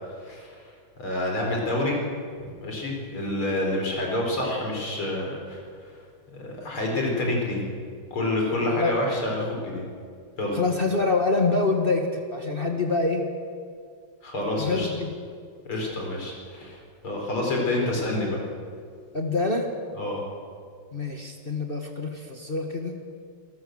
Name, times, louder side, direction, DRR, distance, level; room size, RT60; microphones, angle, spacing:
voice 1, 0.1-0.7 1.0-2.0 2.4-5.6 6.3-7.6 8.1-9.8 10.4-10.6 14.2-14.9 15.7-18.4 20.0-20.2, left 1 dB, 85° left, 0 dB, 5.4 m, -28 dB
voice 2, 10.5-13.2 14.5-15.1 19.1-19.7 20.9-23.0, left 3 dB, 30° left, 2 dB, 1.5 m, -26 dB
27.0 x 13.5 x 7.9 m, 2.2 s
omnidirectional pair, 2.3 m